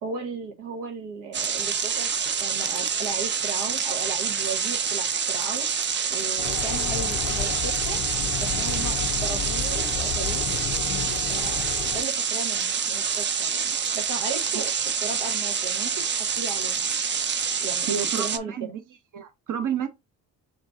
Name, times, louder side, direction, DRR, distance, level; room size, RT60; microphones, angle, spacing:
voice 1, 0.0-2.1 2.4-5.7 6.1-8.0 8.4-10.4 11.3-13.6 13.9-14.7 15.0-16.9 17.6-17.9 18.2-18.7, right 4 dB, 75° right, 1.0 m, -36 dB
sound 1, 1.3-18.4, right 6 dB, 30° right, 0.5 m, -27 dB
sound 2, 6.4-12.0, left 10 dB, 45° left, 0.5 m, -32 dB
voice 2, 17.9-18.7 19.1-19.9, right 8 dB, 45° right, 1.0 m, -29 dB
3.7 x 2.5 x 3.8 m
supercardioid pair, 55°, 42 cm